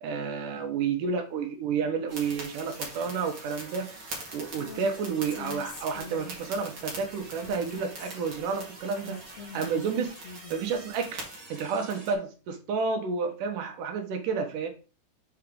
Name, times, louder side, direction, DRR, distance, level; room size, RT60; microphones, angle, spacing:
voice 1, 0.0-3.9 4.3-9.2 9.5-10.1 10.5-14.7, right 5 dB, 85° right, 4 dB, 2.8 m, -30 dB
sound 1, 2.1-12.1, right 2 dB, 40° right, 2.6 m, -43 dB
Female speech woman speaking, 4.6-4.9 5.3-6.5 7.4-8.6 9.0-10.7, left 4 dB, 60° left, 2.1 m, -44 dB
7.4 x 4.9 x 3.8 m, 0.35 s
omnidirectional pair, 3.7 m